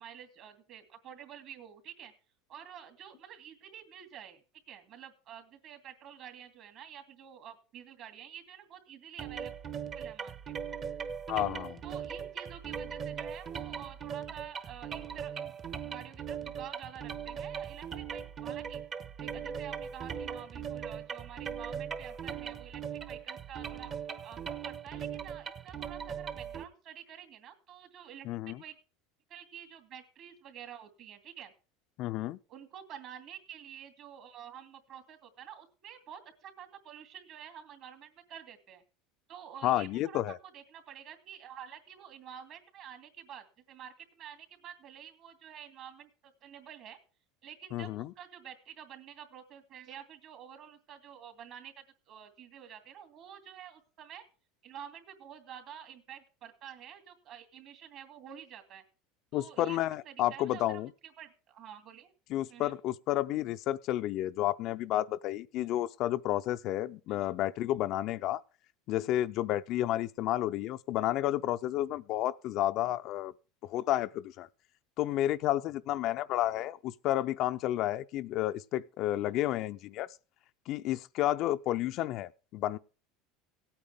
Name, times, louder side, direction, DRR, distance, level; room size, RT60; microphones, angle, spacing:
voice 1, 0.0-2.1 2.5-4.4 4.7-9.5 9.9-10.8 11.3-11.5 11.8-15.5 15.8-18.8 19.2-23.9 24.2-28.8 29.3-31.5 32.5-38.8 39.3-47.0 47.4-54.2 54.6-58.8 59.3-62.1 62.5-62.7 67.1-67.4 82.0-82.1, right 9 dB, 50° right, 2.6 m, -49 dB
sound 1, 9.2-26.6, right 7 dB, 35° right, 1.0 m, -39 dB
voice 2, 11.3-11.8 28.2-28.6 32.0-32.4 39.6-40.4 47.7-48.1 59.3-60.9 62.3-68.4 68.9-73.3 73.6-74.5 75.0-80.1 80.7-82.8, left 14 dB, 50° left, 0.5 m, -31 dB
17.5 x 8.8 x 3.5 m
supercardioid pair, 130°, 0 cm